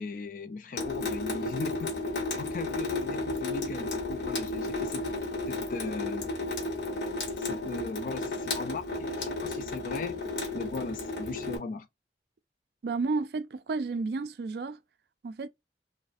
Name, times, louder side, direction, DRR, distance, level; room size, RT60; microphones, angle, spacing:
voice 1, 0.0-1.9 2.4-5.2 5.5-6.3 7.4-10.2 10.5-11.9, left 4 dB, 50° left, 0.3 m, -38 dB
Water tap faucet / Sink (filling or washing) / Drip, 0.8-11.6, left 2 dB, 75° left, 0.8 m, -33 dB
voice 2, 12.8-14.8 15.2-15.5, right 3 dB, 65° right, 0.3 m, -31 dB
2.4 x 2.1 x 2.5 m
head